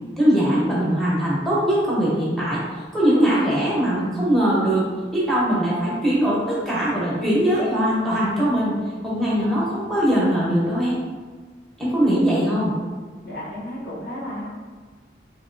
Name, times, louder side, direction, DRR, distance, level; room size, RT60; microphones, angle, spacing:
voice 1, 0.2-2.6 2.9-8.7 9.0-11.0 11.8-12.7, equal, ahead, -8 dB, 0.7 m, -21 dB
voice 2, 13.2-14.4, left 1 dB, 75° left, -7 dB, 1.2 m, -33 dB
2.9 x 2.8 x 2.5 m, 1.5 s
head